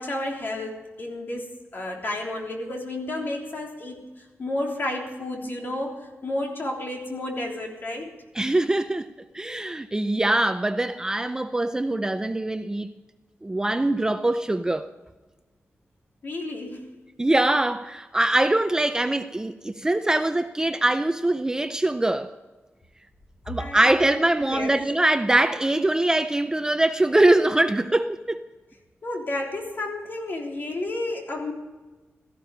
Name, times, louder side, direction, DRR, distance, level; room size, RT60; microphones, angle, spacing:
voice 1, 0.0-1.5 1.7-4.0 4.4-8.1 16.2-16.9 23.6-24.0 24.5-24.8 29.0-31.5, left 1 dB, 45° left, 3.4 m, -31 dB
voice 2, 8.3-12.9 13.4-14.9 17.2-22.3 23.5-28.4, right 1 dB, 15° right, 0.5 m, -23 dB
17.0 x 14.0 x 5.2 m
wide cardioid pair, 145°, 5 cm